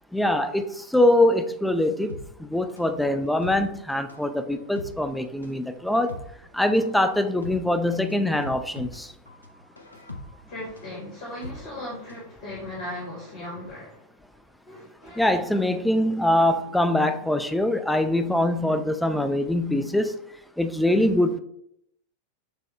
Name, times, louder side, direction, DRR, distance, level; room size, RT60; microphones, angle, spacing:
voice 1, 0.1-2.2 2.5-6.1 6.5-9.1 15.2-20.2 20.6-21.4, left 1 dB, 5° left, 0.3 m, -23 dB
sound 1, 2.1-12.3 12.6-12.7, left 2 dB, 80° left, 0.4 m, -42 dB
voice 2, 10.5-14.0 14.6-15.6, left 1 dB, 55° left, 1.5 m, -38 dB
6.2 x 2.1 x 3.1 m
figure-of-eight pair, 90°, 0 cm